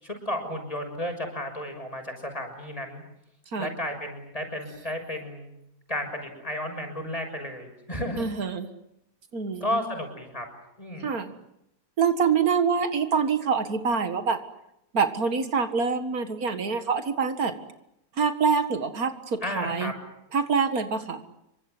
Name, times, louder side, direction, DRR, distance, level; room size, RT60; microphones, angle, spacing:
voice 1, 0.0-3.0 3.6-5.5 5.9-8.3 9.6-10.5 10.8-11.2 19.4-19.9, left 1 dB, 25° left, 5 dB, 6.6 m, -33 dB
voice 2, 8.2-8.7 9.3-9.8 11.0-11.3 12.0-14.4 14.9-17.5 18.2-19.9 20.3-21.2, right 5 dB, 85° right, 9 dB, 2.2 m, -25 dB
27.0 x 24.5 x 7.9 m, 0.82 s
omnidirectional pair, 1.5 m